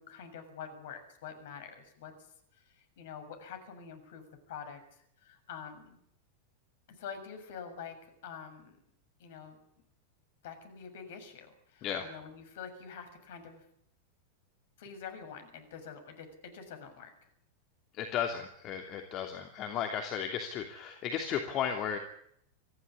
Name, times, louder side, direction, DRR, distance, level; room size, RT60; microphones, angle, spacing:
voice 1, 0.0-2.1 2.5-4.8 5.2-6.0 6.9-8.8 9.2-9.6 10.4-13.7 14.8-17.1, left 7 dB, 55° left, 7 dB, 7.0 m, -46 dB
voice 2, 17.9-22.0, left 8 dB, 35° left, 4 dB, 2.8 m, -34 dB
25.0 x 16.0 x 9.8 m, 0.70 s
figure-of-eight pair, 90°, 0 cm